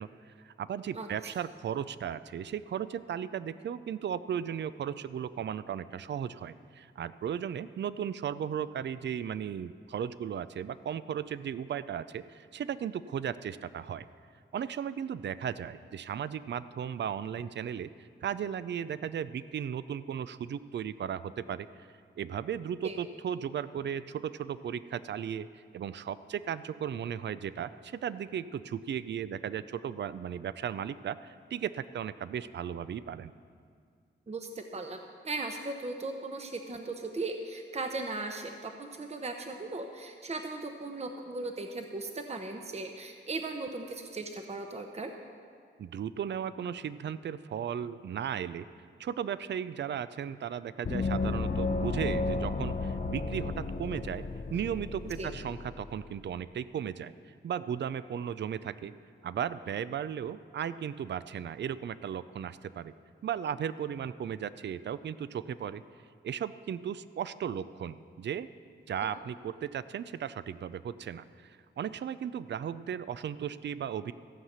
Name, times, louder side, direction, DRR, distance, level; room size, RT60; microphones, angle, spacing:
voice 1, 0.0-14.1 14.5-21.9 22.2-33.3 45.8-48.7 49.0-54.2 54.5-57.1 57.4-58.9 59.2-62.9 63.2-65.8 66.2-68.5 68.9-74.1, right 8 dB, 60° right, 15 dB, 0.4 m, -36 dB
voice 2, 34.3-35.0 35.2-45.1 55.0-55.3 69.0-69.2, right 3 dB, 35° right, 5 dB, 0.8 m, -37 dB
Gong, 50.8-56.1, left 3 dB, 40° left, 0.6 m, -33 dB
15.0 x 5.7 x 8.0 m, 2.1 s
wide cardioid pair, 75°, 20 cm